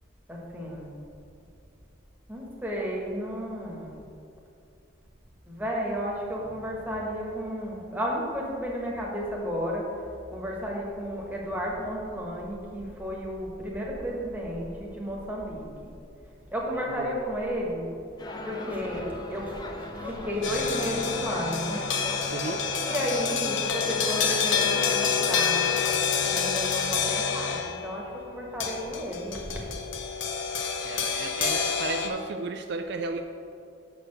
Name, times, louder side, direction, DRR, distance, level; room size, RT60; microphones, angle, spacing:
voice 1, 0.3-0.9 2.3-3.9 5.5-9.8 10.3-15.9 16.5-17.9 18.4-19.6 20.0-21.8 22.8-29.5, equal, 10° right, -3 dB, 1.1 m, -32 dB
voice 2, 16.7-17.3 22.3-22.6 30.8-33.2, right 4 dB, 55° right, 5 dB, 0.3 m, -34 dB
sound 1, 18.2-25.9, left 1 dB, 20° left, 0.5 m, -37 dB
sound 2, 20.4-27.9 28.6-32.1, left 6 dB, 70° left, 0.8 m, -28 dB
6.5 x 4.5 x 6.3 m, 2.5 s
head